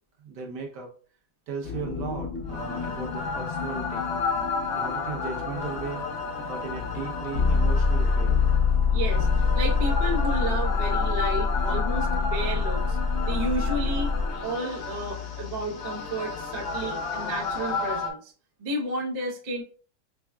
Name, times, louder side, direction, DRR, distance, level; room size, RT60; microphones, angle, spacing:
voice 1, 0.2-0.9 1.5-4.1 4.7-6.0 6.4-8.4, right 5 dB, 75° right, 1 dB, 1.5 m, -36 dB
sound 1, 1.6-18.1, left 4 dB, 55° left, 0.8 m, -26 dB
voice 2, 8.9-13.0 13.3-14.1 14.4-18.3 18.6-19.6, right 2 dB, 35° right, -2 dB, 0.7 m, -32 dB
5.7 x 2.2 x 2.3 m, 0.41 s
omnidirectional pair, 1.8 m